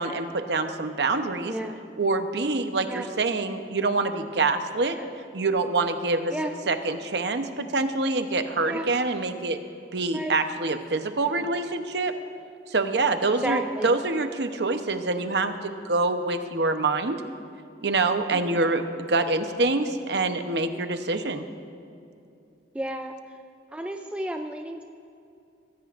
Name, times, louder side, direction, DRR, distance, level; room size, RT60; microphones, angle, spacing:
voice 1, 0.0-1.5 2.0-5.0 5.3-6.3 6.7-9.6 9.9-12.1 12.7-17.2 17.8-21.5, right 3 dB, 70° right, 7 dB, 0.9 m, -26 dB
voice 2, 1.4-1.8 2.9-3.1 4.9-5.1 6.3-6.5 8.6-8.9 10.1-10.3 13.4-14.0 18.3-18.6 20.7-20.8 22.7-23.1 23.7-24.8, right 1 dB, 5° right, 4 dB, 0.5 m, -32 dB
22.5 x 16.0 x 2.6 m, 2.6 s
head